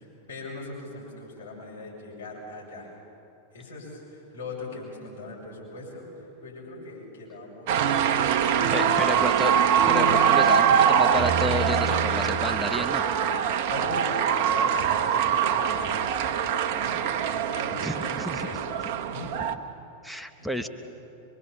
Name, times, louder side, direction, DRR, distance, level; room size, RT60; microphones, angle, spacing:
voice 1, 0.0-2.9 3.5-8.6 9.0-9.4 13.7-16.0 16.4-18.6 19.1-19.3 20.1-20.7, left 2 dB, 70° left, -4 dB, 6.8 m, -40 dB
sound 1, 7.7-19.5, right 8 dB, 50° right, 1.0 m, -23 dB
voice 2, 8.7-9.5 9.9-13.0 17.8-18.5 20.0-20.7, equal, ahead, 8 dB, 1.0 m, -31 dB
24.5 x 23.0 x 7.2 m, 2.8 s
figure-of-eight pair, 90°, 0 cm